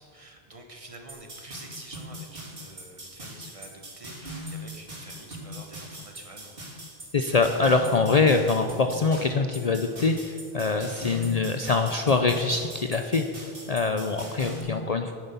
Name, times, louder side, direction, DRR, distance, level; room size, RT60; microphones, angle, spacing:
voice 1, 0.0-6.5, right 2 dB, 35° right, 3 dB, 1.3 m, -47 dB
sound 1, 1.1-14.6, equal, 65° right, 3.6 m, -40 dB
voice 2, 7.1-13.2 13.7-15.1, left 4 dB, 45° left, 6 dB, 0.6 m, -24 dB
9.7 x 9.7 x 6.9 m, 2.3 s
omnidirectional pair, 1.0 m